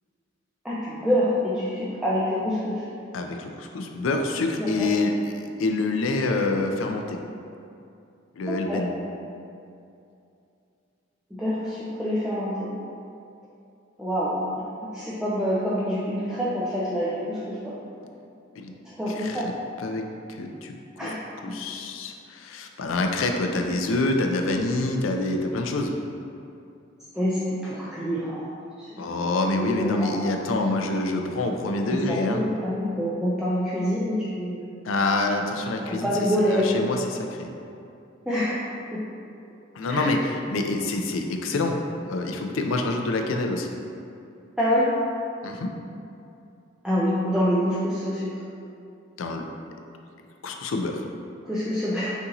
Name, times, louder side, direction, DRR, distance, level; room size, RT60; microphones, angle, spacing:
voice 1, 0.6-2.8 4.6-4.9 8.5-8.9 11.3-12.7 14.0-17.7 18.8-19.5 21.0-21.2 21.5-21.6 27.1-28.5 28.8-30.3 31.9-34.6 35.9-36.7 38.3-38.6 38.9-39.0 39.9-40.1 44.6-44.9 46.8-48.4 51.4-52.1, equal, 5° right, -8 dB, 0.4 m, -26 dB
voice 2, 3.1-5.1 5.6-7.2 8.4-8.9 18.6-18.7 19.2-19.5 19.8-20.0 20.4-20.7 21.0-21.1 21.4-26.0 29.0-32.4 34.8-36.1 36.5-37.5 39.7-40.2 40.5-41.7 42.1-43.7 45.4-45.7 49.2-49.4 50.4-51.1, left 2 dB, 85° left, 4 dB, 0.4 m, -26 dB
6.1 x 2.7 x 2.9 m, 2.6 s
head